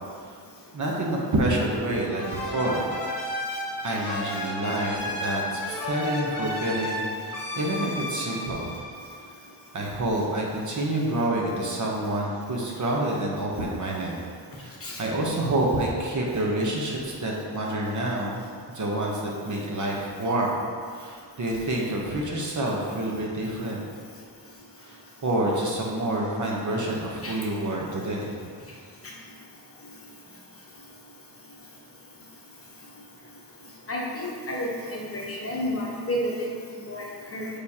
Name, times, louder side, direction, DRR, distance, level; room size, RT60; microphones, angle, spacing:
voice 1, 0.7-2.9 3.8-7.1 7.6-8.7 9.7-14.2 14.6-18.4 18.7-20.5 20.9-23.8 24.8-28.4, right 1 dB, 45° right, -2 dB, 0.9 m, -28 dB
sound 1, 2.2-9.6, left 1 dB, 55° left, 1.0 m, -33 dB
voice 2, 33.9-36.5 36.8-37.0 37.3-37.5, left 1 dB, 35° left, -4 dB, 1.0 m, -30 dB
6.9 x 5.0 x 2.8 m, 2.1 s
wide cardioid pair, 145°, 41 cm